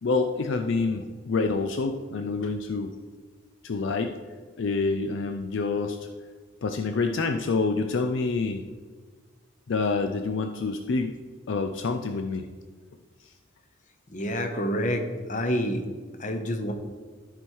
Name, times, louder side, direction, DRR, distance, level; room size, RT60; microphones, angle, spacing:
voice 1, 0.0-2.9 3.6-4.2 4.6-6.0 6.6-8.6 9.7-11.1 11.5-12.4, left 4 dB, 65° left, 6 dB, 0.4 m, -27 dB
voice 2, 14.1-15.8 16.2-16.7, equal, 35° left, 6 dB, 0.9 m, -28 dB
13.0 x 4.6 x 4.6 m, 1.5 s
head